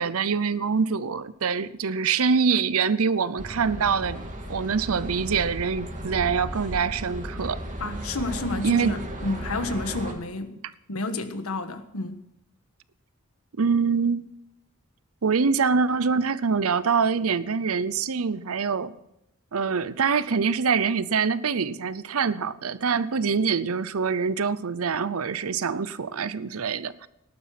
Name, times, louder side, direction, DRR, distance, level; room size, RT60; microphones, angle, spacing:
voice 1, 0.0-4.2 4.5-7.6 8.6-9.0 13.6-14.3 15.2-18.9 19.5-27.1, right 5 dB, 80° right, 0.7 m, -25 dB
sound 1, 3.4-10.1, equal, 35° right, 2.8 m, -35 dB
voice 2, 7.8-10.5 10.9-12.2, left 2 dB, 85° left, 1.5 m, -30 dB
18.5 x 11.5 x 5.9 m
head